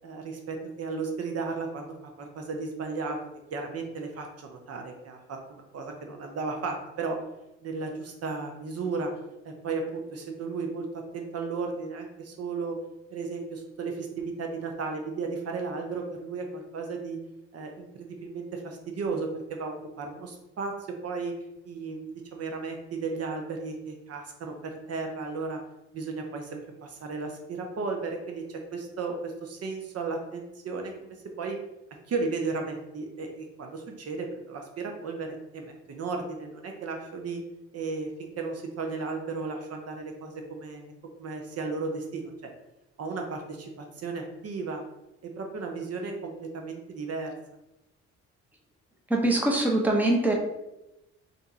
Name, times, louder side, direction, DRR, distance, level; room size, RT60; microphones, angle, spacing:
voice 1, 0.0-3.2 3.5-7.2 7.6-9.1 9.4-12.8 13.1-17.2 17.5-21.3 21.6-25.6 25.9-31.6 32.1-37.4 37.7-40.9 41.2-42.5 43.0-44.8 45.2-47.3, right 4 dB, 55° right, 3 dB, 0.7 m, -34 dB
voice 2, 49.1-50.3, right 1 dB, 5° right, -1 dB, 0.8 m, -23 dB
3.4 x 2.7 x 4.2 m, 0.91 s
cardioid pair, 90°, 30 cm